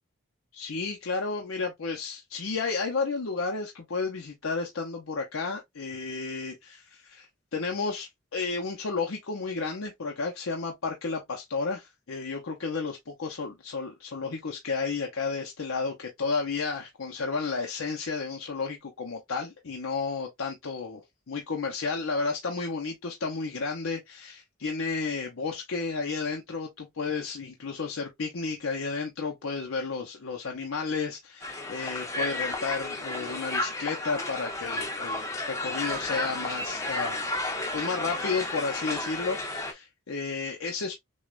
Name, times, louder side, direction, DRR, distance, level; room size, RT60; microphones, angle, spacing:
voice 1, 0.5-21.0 21.3-37.3 37.7-40.9, left 4 dB, 80° left, 0.8 m, -32 dB
Crowd, 31.4-39.7, left 2 dB, 15° left, 0.8 m, -32 dB
6.3 x 2.3 x 2.4 m
head